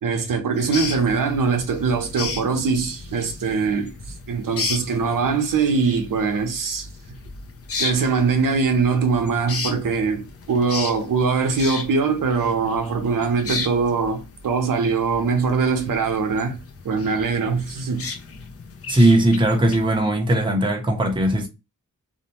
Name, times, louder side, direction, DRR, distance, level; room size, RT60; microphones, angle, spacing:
voice 1, 0.0-3.9 4.3-6.9 7.8-16.6 16.8-18.1, right 5 dB, 85° right, 0.7 m, -22 dB
sound 1, 0.5-20.0, left 4 dB, 45° left, 0.5 m, -35 dB
voice 2, 18.9-21.5, right 1 dB, 15° right, 0.6 m, -18 dB
2.6 x 2.1 x 2.8 m
wide cardioid pair, 135°, 32 cm